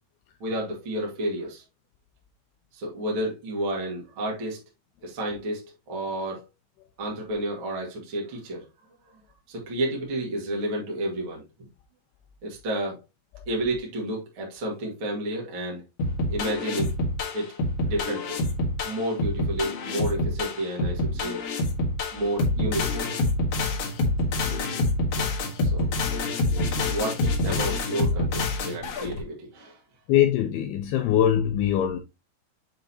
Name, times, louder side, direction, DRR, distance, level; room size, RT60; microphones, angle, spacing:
voice 1, 0.4-1.6 2.7-4.6 5.0-6.4 7.0-8.6 9.5-11.4 12.4-13.0 13.5-15.8 16.3-16.9 17.3-17.5 17.8-18.4 18.8-21.4 22.1-23.0 25.2-25.3 25.6-25.9 26.9-29.8, right 1 dB, 35° right, 2.4 m, -31 dB
sound 1, 16.0-29.2, left 2 dB, 55° left, 2.5 m, -26 dB
voice 2, 30.1-32.0, left 10 dB, 80° left, 2.4 m, -22 dB
7.7 x 5.3 x 2.9 m
omnidirectional pair, 5.1 m